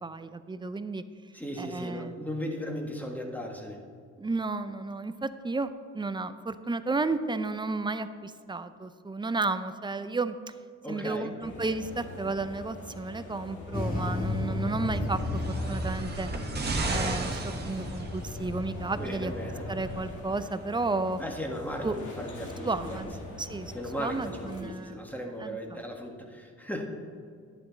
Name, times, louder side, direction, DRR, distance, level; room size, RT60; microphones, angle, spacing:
voice 1, 0.0-1.0 1.6-2.2 4.2-10.4 10.9-16.3 16.9-19.3 19.7-21.2 21.8-22.0 22.6-25.0 25.4-25.8, right 3 dB, 15° right, 12 dB, 0.5 m, -32 dB
voice 2, 1.3-3.8 10.8-11.4 18.9-19.7 21.2-23.1 23.7-26.9, equal, 5° left, 1 dB, 1.5 m, -37 dB
sound 1, 11.4-24.6, left 1 dB, 75° left, 2.1 m, -43 dB
sound 2, 13.7-20.0, left 2 dB, 30° left, 1.8 m, -34 dB
sound 3, 15.1-18.5 19.4-19.5, right 2 dB, 35° right, 1.3 m, -34 dB
11.0 x 9.4 x 4.0 m, 2.2 s
cardioid pair, 90°, 30 cm